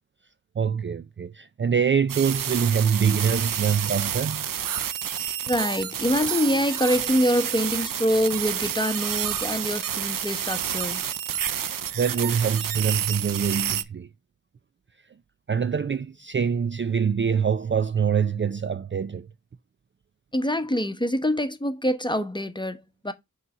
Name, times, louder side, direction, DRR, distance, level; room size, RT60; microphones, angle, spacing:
voice 1, 0.6-4.5 11.6-14.1 15.5-19.3, right 7 dB, 35° right, 0.4 m, -24 dB
sound 1, 2.1-13.8, right 9 dB, 90° right, 0.5 m, -29 dB
voice 2, 5.5-11.0 20.3-23.1, equal, 15° left, 1.0 m, -25 dB
5.4 x 4.0 x 5.5 m
cardioid pair, 40°, 32 cm